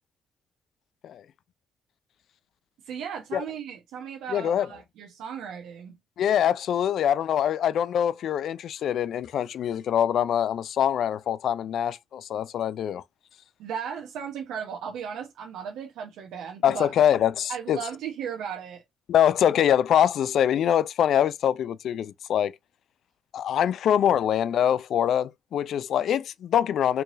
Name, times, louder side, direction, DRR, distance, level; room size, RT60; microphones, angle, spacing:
voice 1, 2.8-6.0 13.6-16.9 17.5-18.8, right 7 dB, 85° right, 0.9 m, -36 dB
voice 2, 4.3-4.7 6.2-13.0 16.6-17.8 19.1-22.5 23.3-27.0, left 10 dB, 70° left, 0.3 m, -24 dB
4.5 x 3.1 x 2.5 m
cardioid pair, 90°, 0 cm